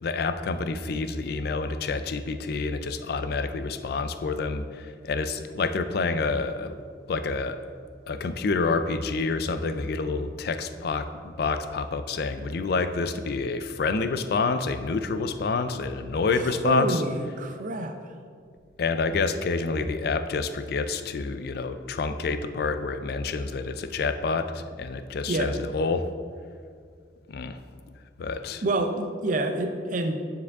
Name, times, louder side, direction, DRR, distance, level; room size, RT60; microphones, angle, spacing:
voice 1, 0.0-6.8 7.1-7.6 8.1-17.0 18.8-26.1 27.3-27.6 28.2-28.6, left 4 dB, 60° left, 10 dB, 0.4 m, -28 dB
voice 2, 16.6-18.1 25.3-25.5 28.6-30.2, right 2 dB, 45° right, 7 dB, 0.5 m, -27 dB
9.2 x 4.8 x 3.5 m, 2.1 s
head